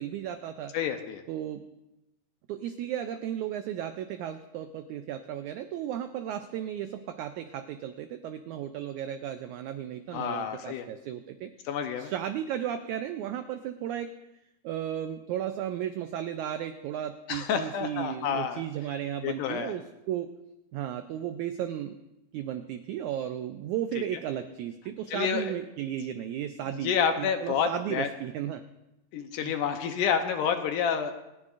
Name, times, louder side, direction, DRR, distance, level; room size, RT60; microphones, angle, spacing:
voice 1, 0.0-0.7 1.3-1.6 2.5-11.5 12.0-14.1 14.6-20.3 20.7-22.0 22.3-28.6 29.4-29.5, right 10 dB, 90° right, 8 dB, 1.7 m, -34 dB
voice 2, 0.7-1.2 10.1-10.9 11.7-12.1 17.3-18.6 19.2-19.7 24.0-24.1 25.1-25.5 26.8-28.1 29.1-31.1, left 7 dB, 75° left, 7 dB, 2.2 m, -29 dB
28.5 x 9.9 x 2.5 m, 0.92 s
omnidirectional pair, 4.0 m